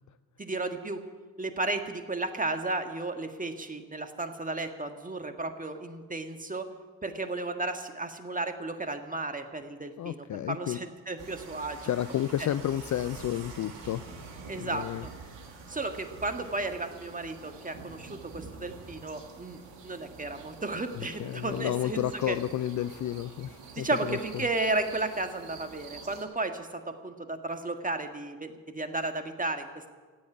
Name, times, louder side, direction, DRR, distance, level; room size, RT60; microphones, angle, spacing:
voice 1, 0.4-1.0 1.4-6.7 7.0-11.9 12.4-12.5 14.5-15.1 15.7-22.4 23.8-29.9, right 2 dB, 15° right, 7 dB, 1.8 m, -34 dB
voice 2, 10.0-10.8 11.8-15.0 21.0-24.2, left 12 dB, 40° left, 13 dB, 0.5 m, -32 dB
sound 1, 11.2-26.2, right 4 dB, 60° right, 2.7 m, -47 dB
15.0 x 8.5 x 9.9 m, 1.4 s
hypercardioid pair, 55°, 49 cm